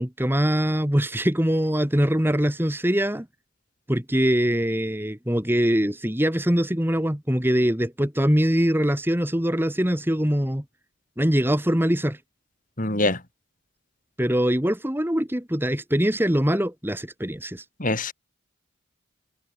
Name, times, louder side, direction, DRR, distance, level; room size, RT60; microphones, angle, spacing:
voice 1, 0.0-3.2 3.9-10.6 11.2-12.2 14.2-17.6, equal, 10° right, 1.7 m, -23 dB
voice 2, 12.8-13.2 17.8-18.1, left 2 dB, 40° left, 4.6 m, -24 dB
head